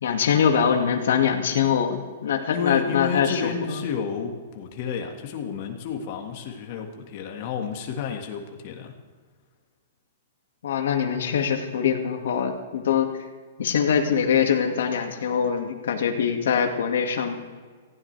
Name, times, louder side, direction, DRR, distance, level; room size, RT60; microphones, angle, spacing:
voice 1, 0.0-3.8 10.6-13.2 13.6-17.4, left 7 dB, 70° left, 4 dB, 1.9 m, -23 dB
voice 2, 2.5-9.0, left 6 dB, 35° left, 3 dB, 1.7 m, -31 dB
18.5 x 15.5 x 3.4 m, 1.5 s
hypercardioid pair, 175°, 0 cm